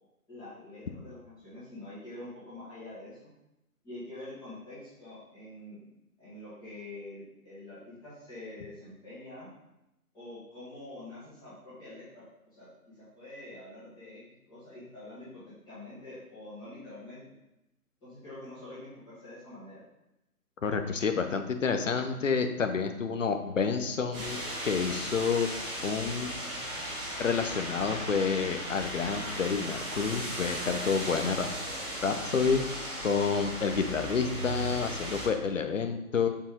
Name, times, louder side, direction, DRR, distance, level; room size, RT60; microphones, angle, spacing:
voice 1, 0.3-3.3 3.8-5.8 6.2-9.5 10.1-12.2 12.5-14.2 14.5-17.2 18.0-19.8, left 2 dB, 10° left, -14 dB, 1.9 m, -46 dB
voice 2, 20.6-24.4 24.6-25.5 25.8-26.3 27.2-31.5 32.0-32.6 33.0-36.3, left 5 dB, 55° left, 7 dB, 0.8 m, -29 dB
sound 1, 24.1-35.3, equal, 15° right, 1.3 m, -36 dB
6.9 x 4.5 x 3.7 m, 0.90 s
figure-of-eight pair, 140°, 46 cm